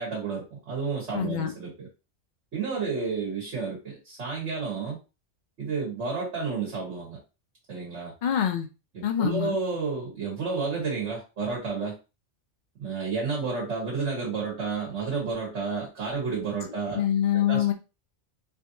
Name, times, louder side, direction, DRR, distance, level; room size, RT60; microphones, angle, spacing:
voice 1, 0.0-1.9 2.5-5.0 5.6-7.2 7.7-8.1 8.9-11.9 12.8-17.0 17.5-17.7, right 4 dB, 75° right, -3 dB, 1.5 m, -31 dB
voice 2, 1.1-1.5 8.2-8.7 9.0-9.6 16.9-17.7, left 10 dB, 55° left, 6 dB, 0.5 m, -25 dB
3.3 x 2.7 x 2.6 m, 0.30 s
omnidirectional pair, 1.2 m